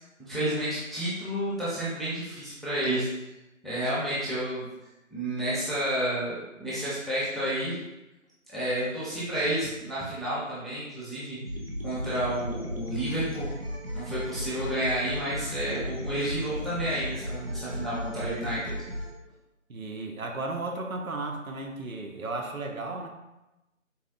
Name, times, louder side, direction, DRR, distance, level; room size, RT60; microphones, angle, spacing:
voice 1, 0.2-3.1 3.6-4.7 5.1-7.8 8.5-11.4 11.8-13.5 13.9-18.8, right 1 dB, ahead, -10 dB, 0.5 m, -30 dB
sound 1, 11.4-19.1, equal, 45° right, 0.5 m, -36 dB
voice 2, 18.1-18.7 19.7-23.1, right 3 dB, 90° right, 2 dB, 0.7 m, -35 dB
4.0 x 2.3 x 2.5 m, 0.98 s
figure-of-eight pair, 180°, 41 cm